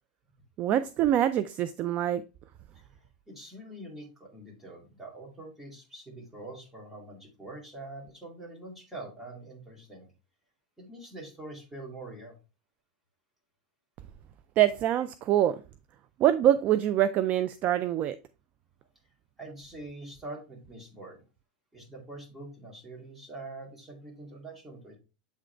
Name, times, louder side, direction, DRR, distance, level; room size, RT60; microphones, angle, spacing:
voice 1, 0.6-2.2 14.6-15.6 16.2-18.2, right 11 dB, 35° right, 0.3 m, -24 dB
voice 2, 3.3-10.1 10.8-12.4 19.4-21.2 21.7-24.9, right 2 dB, 5° right, 2.4 m, -44 dB
8.2 x 3.8 x 3.3 m
supercardioid pair, 145°, 5 cm